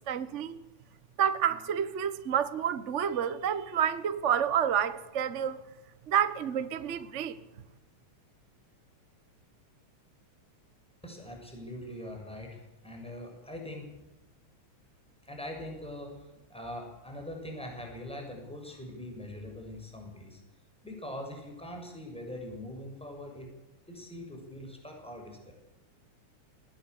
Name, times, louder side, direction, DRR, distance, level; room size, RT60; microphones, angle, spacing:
voice 1, 0.1-0.6 1.2-5.6 6.1-7.3, right 8 dB, 70° right, 0.6 m, -29 dB
voice 2, 11.0-13.9 15.2-20.4 20.8-23.5 23.9-25.5, left 1 dB, ahead, 7.0 m, -42 dB
20.5 x 19.0 x 8.3 m
omnidirectional pair, 3.4 m